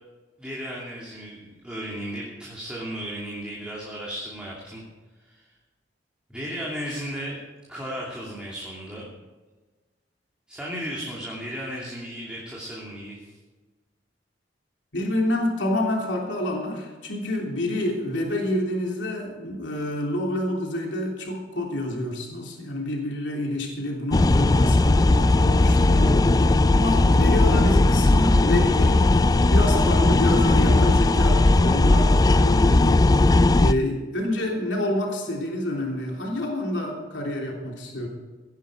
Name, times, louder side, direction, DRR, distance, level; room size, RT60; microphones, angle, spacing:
voice 1, 0.4-4.8 5.3-5.5 6.3-7.4 7.7-9.1 10.5-13.3, equal, 5° right, -5 dB, 2.6 m, -35 dB
voice 2, 14.9-29.2 29.5-33.1 33.6-38.1, left 1 dB, 90° left, 0 dB, 3.2 m, -28 dB
sound 1, 24.1-33.7, left 2 dB, 20° left, 0.3 m, -18 dB
17.0 x 10.5 x 5.0 m, 1.3 s
head